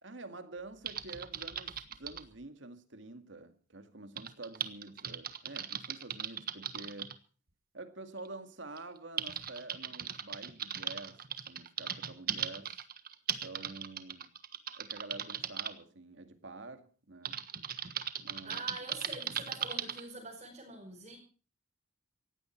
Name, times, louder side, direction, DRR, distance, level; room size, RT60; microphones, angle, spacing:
voice 1, 0.0-7.2 7.7-11.2 11.5-12.8 13.4-14.3 14.8-17.4 18.2-18.6, right 2 dB, 85° right, 2.2 m, -48 dB
Typing, 0.9-2.3 4.2-7.1 8.2-8.3 8.8-15.7 17.3-20.0, right 9 dB, 55° right, 1.4 m, -38 dB
voice 2, 18.4-21.2, right 2 dB, 40° right, 5.5 m, -45 dB
18.5 x 16.0 x 4.5 m
head